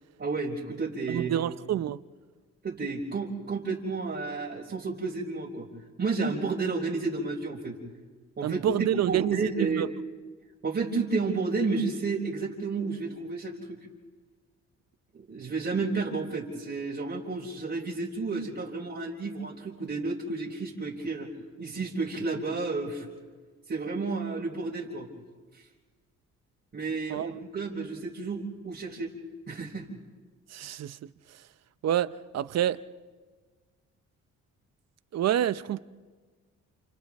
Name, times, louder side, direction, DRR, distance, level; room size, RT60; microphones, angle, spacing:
voice 1, 0.2-1.4 2.6-5.7 6.0-7.8 8.4-8.6 9.0-9.9 10.6-13.8 15.1-21.3 21.6-23.1 23.7-25.1 25.5-25.6 26.7-29.1 29.5-29.9, right 4 dB, 35° right, 3.9 m, -31 dB
voice 2, 1.1-2.0 8.4-9.9 27.1-27.3 30.5-31.0 31.8-32.8 35.1-35.8, right 11 dB, 60° right, 0.7 m, -28 dB
29.5 x 28.5 x 3.6 m
cardioid pair, 90°, 30 cm